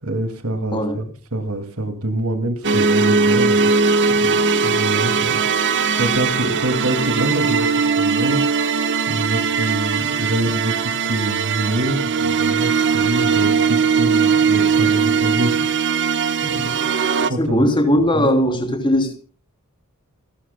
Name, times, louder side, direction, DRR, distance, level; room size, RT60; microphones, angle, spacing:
voice 1, 0.0-3.7 4.1-8.4 9.1-16.1 16.4-16.8 17.2-17.7 18.1-18.3, right 1 dB, 75° right, 2.4 m, -26 dB
sound 1, 2.6-17.3, right 5 dB, 55° right, 1.2 m, -19 dB
voice 2, 17.4-19.2, equal, 25° left, 3.3 m, -18 dB
28.5 x 12.5 x 2.2 m
head